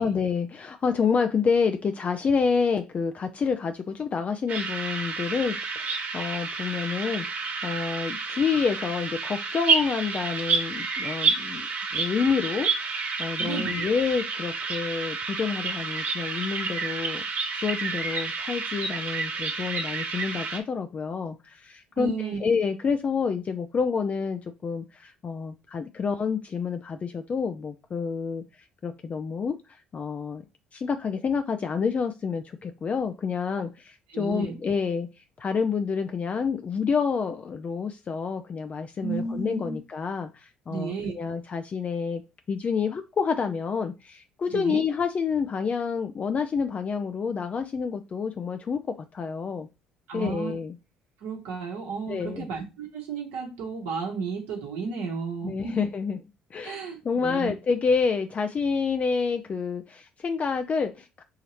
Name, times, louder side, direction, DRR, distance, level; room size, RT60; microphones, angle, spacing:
voice 1, 0.0-7.3 7.6-11.7 11.9-17.2 17.5-28.4 28.8-30.4 30.7-42.2 42.5-49.7 50.1-50.8 52.1-52.5 55.4-56.2 56.5-56.8 57.0-61.2, left 5 dB, 35° left, 0.4 m, -28 dB
sound 1, 4.5-20.6, right 4 dB, 50° right, 1.3 m, -30 dB
voice 2, 13.4-13.8 22.0-22.4 34.1-34.5 39.0-39.8 40.7-41.1 44.5-44.8 50.1-50.5 51.2-55.8 56.6-57.5, right 5 dB, 65° right, 1.1 m, -33 dB
5.6 x 2.8 x 3.1 m
hypercardioid pair, 55°, 4 cm